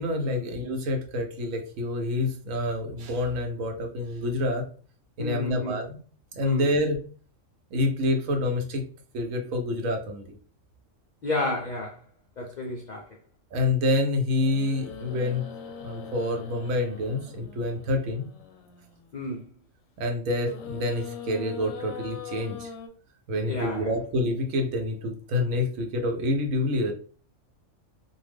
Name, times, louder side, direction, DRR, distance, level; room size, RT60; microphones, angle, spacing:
voice 1, 0.0-4.7 5.2-5.9 6.3-7.0 7.7-8.8 9.1-10.3 13.5-15.4 15.8-18.3 20.0-22.7 23.3-26.9, left 1 dB, 90° right, 1.0 m, -27 dB
voice 2, 5.2-5.8 6.4-6.7 11.2-12.0 12.4-13.2 19.1-19.5 23.5-23.9, left 2 dB, 70° left, 0.4 m, -31 dB
sound 1, 14.3-19.1 20.3-22.9, left 7 dB, 85° left, 1.0 m, -41 dB
2.5 x 2.1 x 3.3 m
omnidirectional pair, 1.4 m